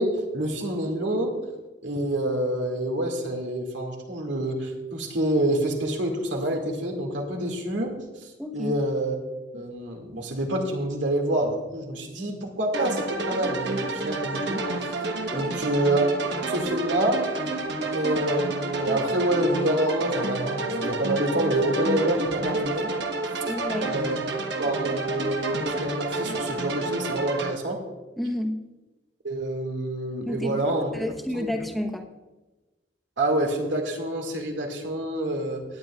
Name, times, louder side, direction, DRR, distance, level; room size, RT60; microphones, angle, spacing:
voice 1, 0.0-1.4 1.8-8.0 8.2-9.2 9.5-14.7 15.3-16.1 16.5-17.3 17.9-22.9 23.8-24.2 24.6-27.8 29.2-30.9 31.3-31.6 33.2-35.7, right 1 dB, 85° right, 1 dB, 2.3 m, -27 dB
voice 2, 8.4-8.7 15.3-15.6 23.5-24.0 28.2-28.6 30.2-32.0, left 1 dB, ahead, 3 dB, 1.1 m, -31 dB
sound 1, 12.7-27.5, right 2 dB, 65° right, 1.2 m, -29 dB
17.5 x 10.0 x 2.4 m, 1.1 s
head